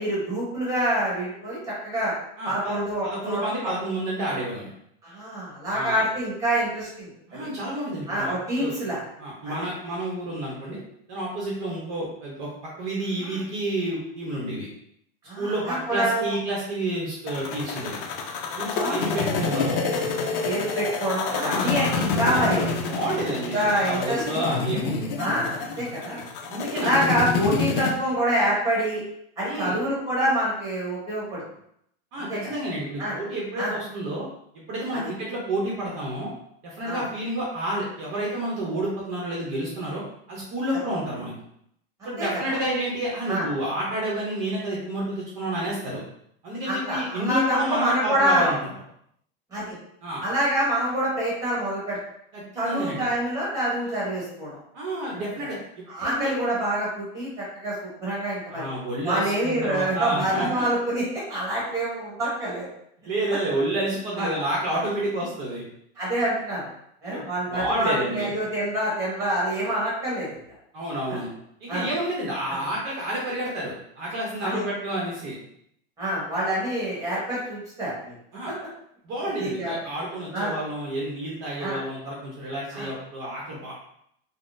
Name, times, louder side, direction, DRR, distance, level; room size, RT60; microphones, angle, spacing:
voice 1, 0.0-2.1 2.4-3.7 5.0-7.5 8.1-9.0 9.4-9.5 13.3-13.4 15.2-16.3 18.7-19.0 20.4-22.7 23.2-23.3 23.5-24.5 25.2-26.3 26.7-29.0 29.4-31.4 32.3-32.4 33.0-33.2 33.6-33.8 34.9-35.0 36.8-37.0 42.0-42.6 43.3-43.4 46.6-48.5 49.5-49.7 50.2-52.0 52.6-54.6 55.4-55.5 55.9-58.7 59.0-62.7 64.2-64.3 66.0-66.6 67.0-70.3 71.1-71.2 71.7-71.9 72.5-72.6 74.4-74.6 76.0-78.1 79.4-79.7 80.3-80.5 81.6-81.8 82.7-82.9, right 1 dB, 10° right, -6 dB, 1.2 m, -26 dB
voice 2, 2.4-4.7 5.7-6.0 7.3-8.7 9.2-10.8 11.1-14.7 15.4-18.0 18.5-19.8 21.3-21.7 22.1-25.0 26.5-26.9 29.4-29.7 32.1-34.3 34.5-36.3 36.6-40.0 40.3-41.3 42.0-46.0 46.4-48.7 50.0-50.2 52.3-53.1 54.7-56.3 58.5-60.7 63.0-65.6 67.1-68.3 70.7-71.3 71.6-75.4 78.3-78.5 79.0-83.7, right 1 dB, 45° right, -4 dB, 0.8 m, -30 dB
sound 1, 17.3-27.9, left 4 dB, 60° left, 0.5 m, -28 dB
3.6 x 2.1 x 2.5 m, 0.72 s
supercardioid pair, 160°, 31 cm